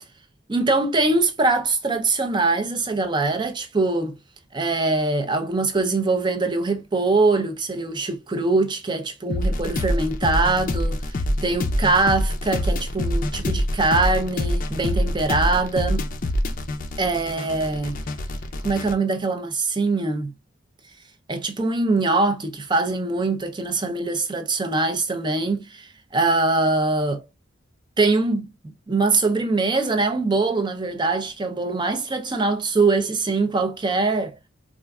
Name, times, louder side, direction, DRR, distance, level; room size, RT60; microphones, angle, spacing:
voice 1, 0.5-4.2 4.5-16.1 17.0-18.0 18.6-20.3 21.3-27.2 28.0-34.3, right 3 dB, 20° right, 0.4 m, -23 dB
sound 1, 9.3-18.9, left 1 dB, 40° left, 0.4 m, -25 dB
4.3 x 2.4 x 2.2 m
head